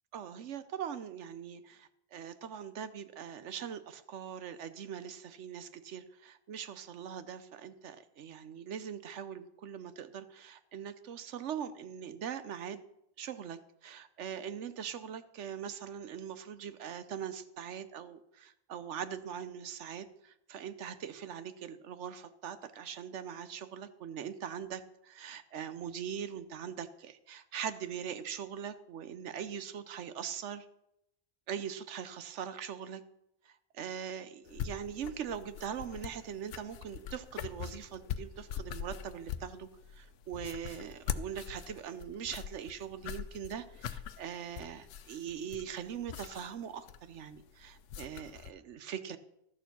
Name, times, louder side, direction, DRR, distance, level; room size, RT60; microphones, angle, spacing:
voice 1, 0.1-12.8 13.2-30.7 31.5-33.0 33.4-49.2, right 8 dB, 85° right, 13 dB, 1.1 m, -42 dB
sound 1, 34.5-48.5, left 9 dB, 85° left, 0.9 m, -43 dB
12.5 x 6.9 x 5.9 m, 0.82 s
omnidirectional pair, 1.2 m